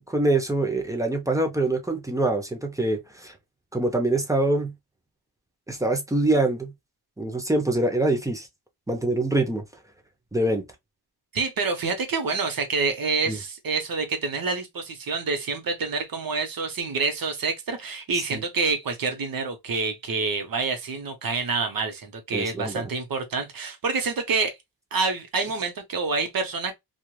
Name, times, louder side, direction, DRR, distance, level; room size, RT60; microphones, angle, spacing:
voice 1, 0.1-3.3 3.7-4.7 5.7-6.7 7.2-8.5 8.9-9.6 10.3-10.6 13.3-13.4 18.3-18.4 22.3-22.9, right 2 dB, 10° right, 0.6 m, -24 dB
voice 2, 11.3-24.6 24.9-26.7, right 4 dB, 55° right, 1.0 m, -27 dB
3.1 x 2.5 x 2.3 m
wide cardioid pair, 145°, 41 cm